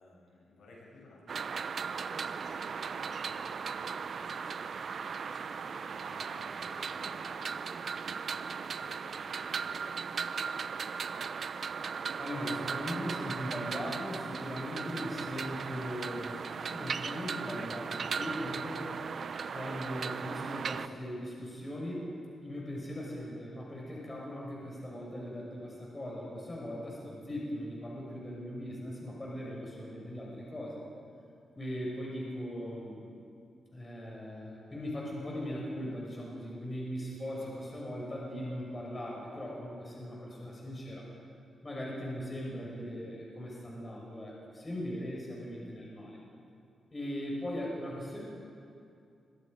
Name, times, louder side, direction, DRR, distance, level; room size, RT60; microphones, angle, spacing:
voice 1, 0.0-1.6 2.1-11.5, left 1 dB, 80° left, -4 dB, 8.0 m, -57 dB
sound 1, 1.3-20.9, right 6 dB, 55° right, 0.7 m, -37 dB
voice 2, 12.2-18.9 19.5-22.2 22.4-30.8 31.6-33.1 33.7-41.1 41.6-46.2 46.9-48.2, equal, 20° left, -3 dB, 6.0 m, -39 dB
27.0 x 22.5 x 5.2 m, 2.5 s
wide cardioid pair, 140°, 0 cm